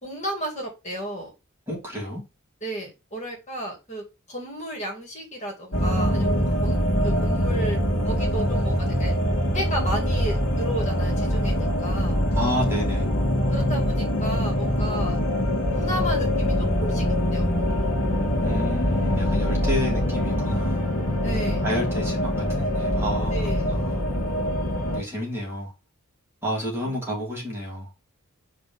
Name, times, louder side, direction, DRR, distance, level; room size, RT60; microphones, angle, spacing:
voice 1, 0.0-1.3 2.6-4.0 4.3-9.1 9.5-12.2 13.5-15.2 15.7-17.7 21.2-21.6 23.3-23.7 26.9-27.0, right 1 dB, 35° left, 2.3 m, -33 dB
voice 2, 1.7-2.2 12.3-13.1 18.4-20.8 21.6-24.0 24.9-25.7 26.4-27.9, equal, 10° right, 2.8 m, -30 dB
sound 1, 5.7-25.0, equal, 80° left, 1.8 m, -24 dB
5.0 x 3.4 x 5.5 m
head